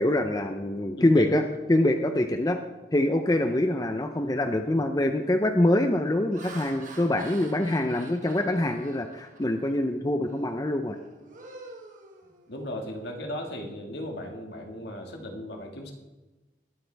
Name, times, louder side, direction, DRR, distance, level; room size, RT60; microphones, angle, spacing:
voice 1, 0.0-1.4 1.7-2.6 2.9-11.0, left 1 dB, 20° left, 6 dB, 0.6 m, -24 dB
voice 2, 1.0-1.4 12.5-15.9, left 1 dB, 65° left, 2 dB, 1.9 m, -36 dB
Laughter, 4.2-4.5 5.1-5.4 6.0-9.8 10.2-10.5 10.9-12.8, right 3 dB, 45° right, 1.5 m, -48 dB
20.5 x 8.4 x 3.4 m, 1.1 s
head